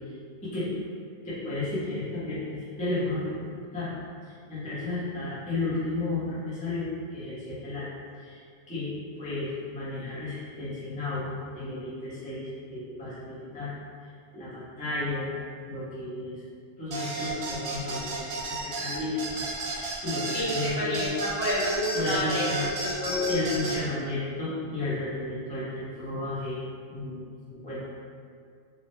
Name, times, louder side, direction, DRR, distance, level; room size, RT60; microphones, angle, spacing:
voice 1, 1.2-3.9 4.5-7.9 8.2-13.7 14.3-15.3 15.6-16.4 16.8-21.1 21.9-22.7 23.3-26.6 26.9-27.8, left 2 dB, 10° left, -10 dB, 0.4 m, -33 dB
sound 1, 16.9-23.8, right 2 dB, 80° right, 0.9 m, -33 dB
voice 2, 20.3-23.4, left 1 dB, 55° left, -9 dB, 0.9 m, -29 dB
2.8 x 2.0 x 3.0 m, 2.2 s
omnidirectional pair, 1.3 m